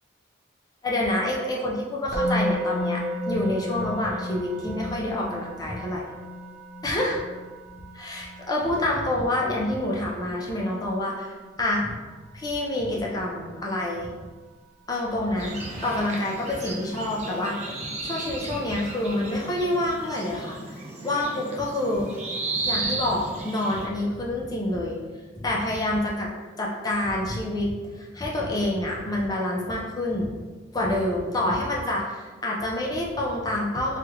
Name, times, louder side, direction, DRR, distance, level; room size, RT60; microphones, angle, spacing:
voice 1, 0.8-6.0 6.8-7.2 7.9-11.9 12.3-14.1 14.9-17.7 18.0-22.1 22.7-25.0 25.4-26.3 26.6-30.3 30.7-34.0, left 1 dB, 20° left, -2 dB, 0.5 m, -27 dB
Musical instrument, 2.1-13.2, equal, 60° left, 0.7 m, -34 dB
sound 1, 15.4-23.9, right 2 dB, 35° right, 0.5 m, -34 dB
3.3 x 2.3 x 2.9 m, 1.3 s
head